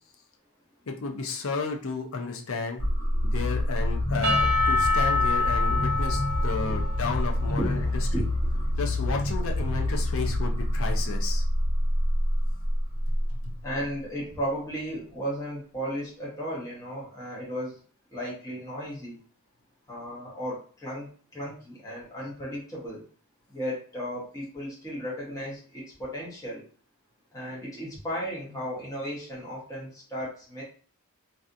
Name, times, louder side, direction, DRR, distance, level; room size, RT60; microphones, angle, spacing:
voice 1, 0.9-2.8 3.2-7.8 8.8-11.4 13.3-13.5, left 4 dB, 65° left, 3 dB, 0.5 m, -32 dB
sound 1, 2.8-13.7, left 1 dB, 80° left, 1.1 m, -27 dB
Percussion / Church bell, 4.2-8.2, left 3 dB, 80° right, 0.8 m, -27 dB
voice 2, 13.6-17.8 18.1-19.2 19.9-23.0 23.5-26.6 27.3-30.6, equal, 15° left, -6 dB, 1.0 m, -35 dB
3.3 x 2.7 x 2.5 m, 0.43 s
head